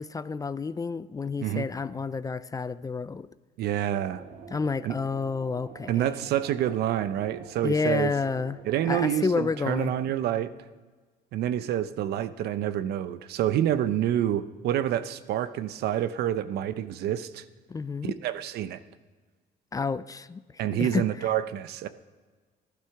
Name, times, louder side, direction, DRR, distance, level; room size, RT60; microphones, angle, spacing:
voice 1, 0.0-3.3 4.5-6.1 7.6-8.6 8.8-9.9 17.7-18.1 19.7-20.4 20.8-21.0, left 4 dB, 20° left, 16 dB, 0.4 m, -29 dB
voice 2, 3.6-4.2 4.8-5.0 5.9-8.1 8.6-10.5 11.3-17.4 18.0-18.8 20.6-21.9, right 11 dB, 75° right, 13 dB, 0.7 m, -28 dB
sound 1, 3.8-10.1, right 6 dB, 50° right, 1.2 m, -47 dB
14.5 x 12.0 x 5.9 m, 1.4 s
cardioid pair, 110°, 17 cm